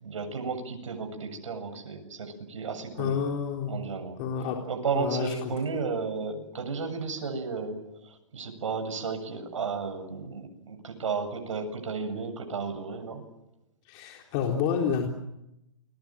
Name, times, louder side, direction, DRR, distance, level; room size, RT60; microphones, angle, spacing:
voice 1, 0.0-3.2 3.7-4.2 4.7-13.2, right 5 dB, 70° right, 6 dB, 7.8 m, -33 dB
voice 2, 3.0-3.8 4.2-4.6 4.9-5.5 13.8-15.1, left 7 dB, 35° left, 1 dB, 3.9 m, -29 dB
29.5 x 22.5 x 7.7 m, 0.86 s
hypercardioid pair, 140°, 17 cm